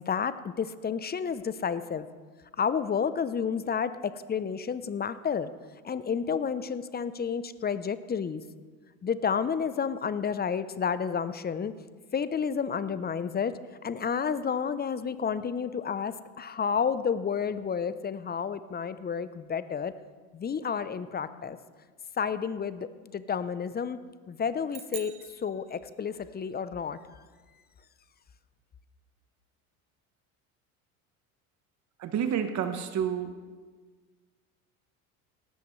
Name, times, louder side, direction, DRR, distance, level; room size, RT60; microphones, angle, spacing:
voice 1, 0.1-2.1 2.6-5.5 5.8-8.4 9.0-11.7 12.1-13.5 13.8-19.9 20.3-21.6 22.2-24.0 24.3-25.1 25.4-27.0, left 6 dB, 25° left, 14 dB, 0.7 m, -30 dB
sound 1, 24.7-26.3, right 13 dB, 90° right, 0.9 m, -45 dB
voice 2, 32.0-33.3, right 8 dB, 40° right, 8 dB, 1.1 m, -29 dB
18.0 x 13.5 x 3.2 m, 1.5 s
hypercardioid pair, 75°, 42 cm